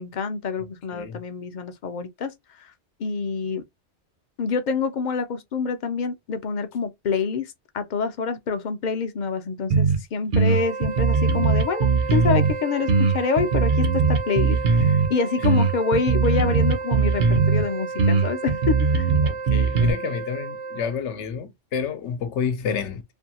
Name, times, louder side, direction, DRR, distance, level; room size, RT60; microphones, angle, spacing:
voice 1, 0.0-2.7 3.0-3.6 4.4-19.1, left 5 dB, 55° left, 0.5 m, -27 dB
sound 1, 9.7-10.0 10.3-12.5 12.9-15.1 15.4-17.6 18.0-19.9, right 4 dB, 55° right, 0.7 m, -20 dB
Wind instrument woodwind instrument, 10.5-21.0, right 4 dB, 90° right, 0.9 m, -33 dB
voice 2, 19.2-23.0, left 6 dB, 90° left, 0.9 m, -29 dB
2.6 x 2.6 x 2.8 m
omnidirectional pair, 1.2 m